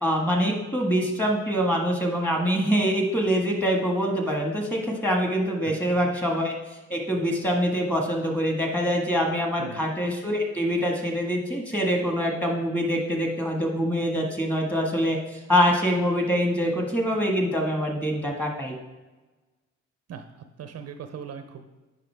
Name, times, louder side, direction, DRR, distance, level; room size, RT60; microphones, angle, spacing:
voice 1, 0.0-6.5 6.9-18.7, equal, 5° left, 0 dB, 1.6 m, -25 dB
voice 2, 5.6-6.1 9.6-9.8 20.1-20.3 20.6-21.8, right 7 dB, 55° right, 8 dB, 0.6 m, -40 dB
9.1 x 5.3 x 3.4 m, 1.2 s
cardioid pair, 90°, 30 cm